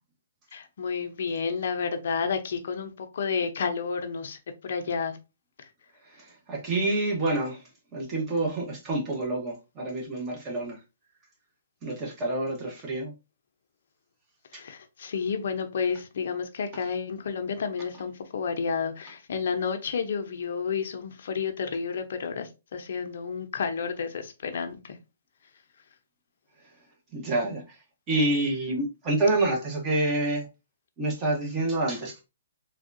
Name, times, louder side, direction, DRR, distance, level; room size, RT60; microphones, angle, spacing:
voice 1, 0.5-5.2 14.5-25.0, left 6 dB, 60° left, 0.6 m, -31 dB
voice 2, 6.0-7.6 7.9-10.8 11.8-13.1 14.5-14.6 27.1-27.8 28.1-30.5 31.0-32.2, right 2 dB, 20° right, 1.0 m, -28 dB
3.5 x 2.3 x 2.5 m
hypercardioid pair, 155°, 0 cm